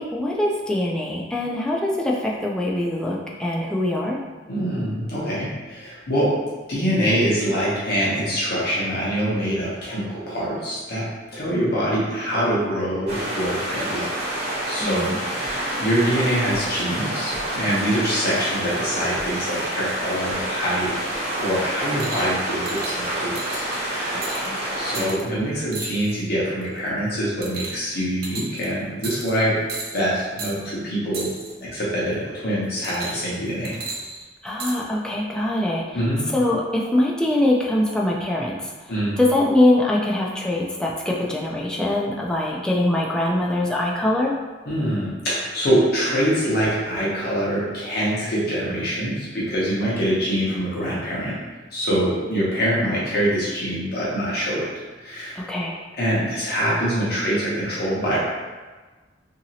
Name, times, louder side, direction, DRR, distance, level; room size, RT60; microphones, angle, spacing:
voice 1, 0.0-4.2 14.8-15.2 24.3-24.6 34.4-36.0 36.3-38.6 39.2-44.3 55.4-55.8, left 1 dB, 5° left, -3 dB, 0.3 m, -23 dB
voice 2, 4.5-6.4 6.7-11.0 11.3-14.1 14.7-20.9 21.4-24.1 24.7-29.5 29.9-31.3 31.6-33.8 35.9-36.3 38.9-39.2 44.6-51.4 51.7-54.7 55.0-55.4 56.0-58.2, equal, 60° left, -7 dB, 0.8 m, -24 dB
sound 1, 13.1-25.1, right 1 dB, 35° right, 1.1 m, -28 dB
sound 2, 22.0-22.3 22.7-23.0 23.3-23.8 24.2-24.5 24.9-25.2 25.7-26.2 26.6-26.9 27.4-27.9 28.2-28.6 29.0-29.4 29.7-30.0 30.4-30.5 31.1-31.5 32.8-33.3 33.6-34.8 35.6-35.7, right 3 dB, 55° right, 0.5 m, -34 dB
2.9 x 2.7 x 2.7 m, 1.3 s
head